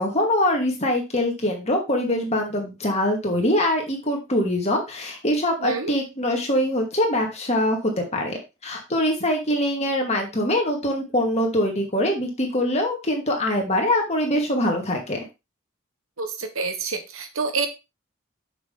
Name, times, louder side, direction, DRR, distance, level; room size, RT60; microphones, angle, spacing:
voice 1, 0.0-15.2, left 1 dB, 30° left, 1 dB, 2.3 m, -23 dB
voice 2, 5.6-5.9 16.2-17.7, right 4 dB, 80° right, 6 dB, 1.3 m, -27 dB
6.9 x 6.2 x 3.8 m, 0.26 s
head